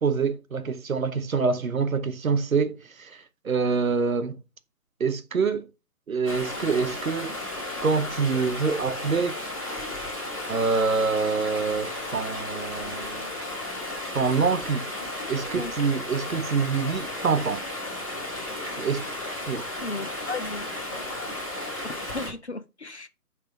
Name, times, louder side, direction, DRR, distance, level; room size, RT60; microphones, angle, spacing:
voice 1, 0.0-4.4 5.0-5.7 6.1-7.4 7.8-9.4 10.5-13.3 14.1-14.9 15.3-17.6 18.8-19.1 19.5-19.6, right 5 dB, 60° right, 0.9 m, -26 dB
Stream, 6.3-22.3, left 1 dB, 20° left, 1.8 m, -34 dB
voice 2, 19.8-20.7 20.9-21.1 21.8-23.1, left 3 dB, 45° left, 0.7 m, -35 dB
8.9 x 3.3 x 4.6 m
hypercardioid pair, 175°, 46 cm